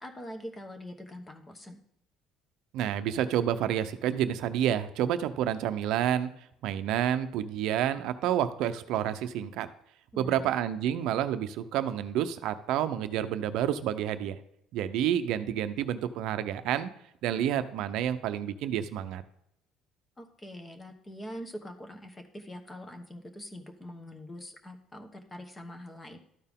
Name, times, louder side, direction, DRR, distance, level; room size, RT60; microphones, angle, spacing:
voice 1, 0.0-1.8 10.1-10.4 20.2-26.2, equal, 15° left, 5 dB, 1.1 m, -44 dB
voice 2, 2.7-6.3 6.6-9.7 10.2-14.4 14.7-16.9 17.2-19.2, right 10 dB, 70° right, 11 dB, 0.6 m, -29 dB
12.5 x 4.5 x 3.6 m, 0.78 s
cardioid pair, 130°, 0 cm